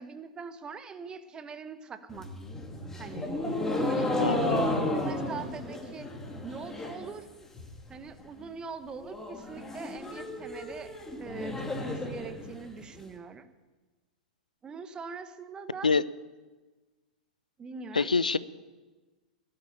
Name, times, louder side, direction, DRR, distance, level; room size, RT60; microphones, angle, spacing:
voice 1, 0.0-2.3 3.0-3.3 3.6-4.4 4.6-6.1 6.4-7.3 7.9-10.9 11.2-13.5 14.6-15.9 17.6-18.1, right 5 dB, 20° right, 11 dB, 1.2 m, -42 dB
sound 1, 2.1-7.1 7.4-7.9 8.2-8.3 8.6-8.7 9.0-13.0, left 1 dB, 10° left, 2.4 m, -33 dB
voice 2, 4.2-4.7 15.8-16.0 17.9-18.4, left 4 dB, 80° left, 19 dB, 0.5 m, -25 dB
17.0 x 8.8 x 8.6 m, 1.2 s
figure-of-eight pair, 100°, 4 cm